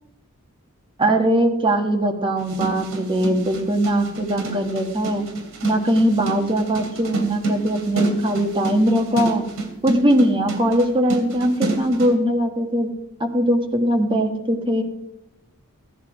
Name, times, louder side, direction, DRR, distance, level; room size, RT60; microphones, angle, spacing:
voice 1, 1.0-5.3 5.6-9.4 9.8-12.9 13.2-14.8, right 1 dB, 20° right, 3 dB, 1.3 m, -20 dB
sound 1, 2.4-12.1, right 3 dB, 60° right, 3.0 m, -29 dB
15.5 x 10.0 x 4.8 m, 0.85 s
head